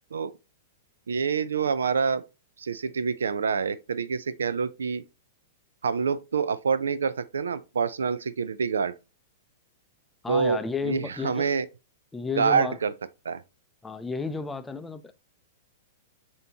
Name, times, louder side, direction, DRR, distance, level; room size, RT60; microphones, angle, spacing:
voice 1, 1.1-2.2 2.6-5.0 5.8-8.9 10.3-11.7 12.4-12.9 13.2-13.4, right 5 dB, 80° right, 0.3 m, -26 dB
voice 2, 10.2-11.5 12.1-12.8 13.8-15.1, left 5 dB, 10° left, 0.5 m, -32 dB
6.8 x 2.8 x 2.8 m
hypercardioid pair, 110°, 0 cm